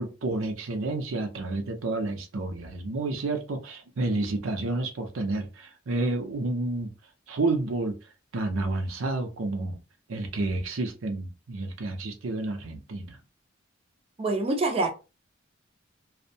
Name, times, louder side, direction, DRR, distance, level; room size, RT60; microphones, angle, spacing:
voice 1, 0.0-6.9 7.3-7.9 8.3-9.8 10.1-13.2, right 2 dB, 85° right, 0.6 m, -30 dB
voice 2, 14.2-14.9, right 2 dB, 30° right, 0.4 m, -25 dB
2.6 x 2.1 x 2.7 m
head